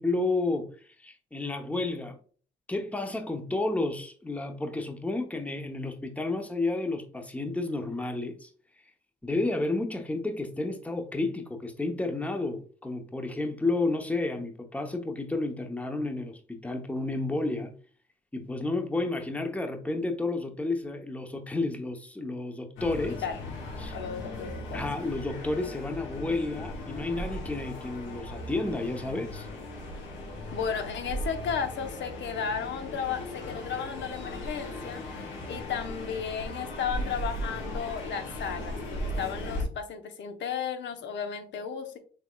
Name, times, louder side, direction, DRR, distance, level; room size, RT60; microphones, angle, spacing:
voice 1, 0.0-2.2 2.7-8.5 9.2-17.7 18.3-23.2 23.8-23.9 24.7-29.5, left 2 dB, 5° left, 0.7 m, -31 dB
sound 1, 22.8-39.6, left 1 dB, 85° left, 1.5 m, -37 dB
voice 2, 23.9-24.9 30.5-35.0 35.5-42.0, left 7 dB, 65° left, 0.7 m, -34 dB
5.7 x 3.5 x 2.2 m
cardioid pair, 90°, 20 cm